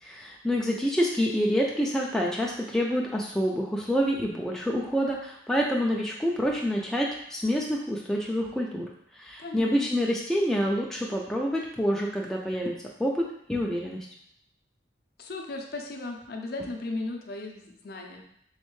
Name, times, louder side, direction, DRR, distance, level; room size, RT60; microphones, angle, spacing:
voice 1, 0.0-8.9 9.2-14.1, equal, 5° left, -3 dB, 0.3 m, -27 dB
voice 2, 9.4-9.9 15.2-18.2, left 2 dB, 55° left, 2 dB, 0.5 m, -36 dB
3.6 x 3.2 x 3.1 m, 0.69 s
head